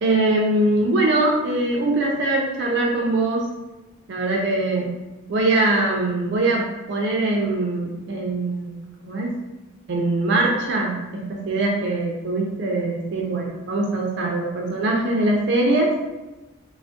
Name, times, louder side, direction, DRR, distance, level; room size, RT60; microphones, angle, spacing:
voice 1, 0.0-3.5 4.1-4.9 5.3-8.7 9.0-9.3 9.9-15.9, right 2 dB, 55° right, -1 dB, 0.4 m, -22 dB
3.3 x 2.0 x 2.5 m, 1.1 s
head